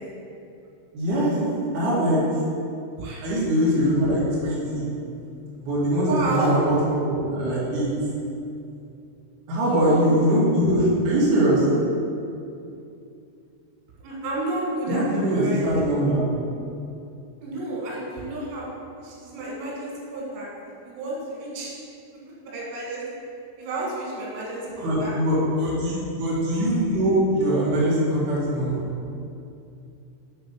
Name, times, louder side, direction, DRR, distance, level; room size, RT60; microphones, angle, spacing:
voice 1, 0.9-1.4 1.7-2.2 3.2-4.9 5.6-6.8 7.0-7.9 9.5-11.7 14.9-16.2 24.8-28.8, equal, 55° right, -8 dB, 2.6 m, -22 dB
voice 2, 3.0-3.3 6.1-6.5 9.6-10.1 14.0-15.9 17.4-18.7 19.0-20.5 20.8-21.7 22.5-23.0 23.6-25.1, right 2 dB, 90° right, -5 dB, 4.0 m, -31 dB
8.0 x 4.0 x 5.2 m, 2.6 s
omnidirectional pair, 5.6 m